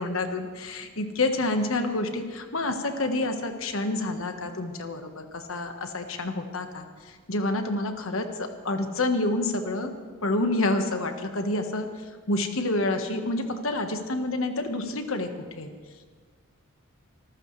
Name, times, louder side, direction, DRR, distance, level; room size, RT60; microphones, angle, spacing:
voice 1, 0.0-9.9 10.2-11.9 12.3-15.3 15.6-15.7, left 2 dB, 70° left, 6 dB, 1.3 m, -28 dB
25.0 x 14.0 x 3.3 m, 1.6 s
head